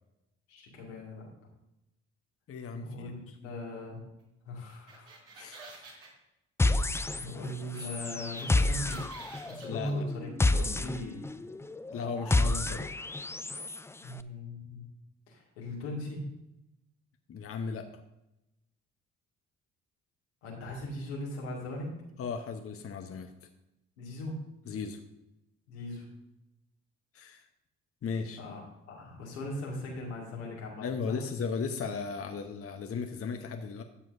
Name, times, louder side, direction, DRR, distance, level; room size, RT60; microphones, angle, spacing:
voice 1, 0.5-1.3 2.8-4.0 4.5-5.1 5.8-6.1 6.8-9.1 9.5-11.3 14.0-14.9 15.3-16.3 20.4-21.9 24.0-24.3 25.7-26.2 28.4-31.2, left 1 dB, 90° left, -3 dB, 2.1 m, -39 dB
voice 2, 2.5-3.5 5.3-5.8 9.7-10.1 11.9-12.9 17.3-17.9 22.2-23.3 24.7-25.0 27.1-27.5 28.0-28.4 30.8-33.8, left 5 dB, 45° left, 5 dB, 0.9 m, -36 dB
sound 1, 4.7-6.1 7.7-7.9 8.1-9.9, right 3 dB, 75° right, 3.0 m, -49 dB
sound 2, 6.6-7.5 7.8-13.8, left 2 dB, 10° left, 0.4 m, -29 dB
12.5 x 7.5 x 2.6 m, 0.90 s
hypercardioid pair, 50°, 33 cm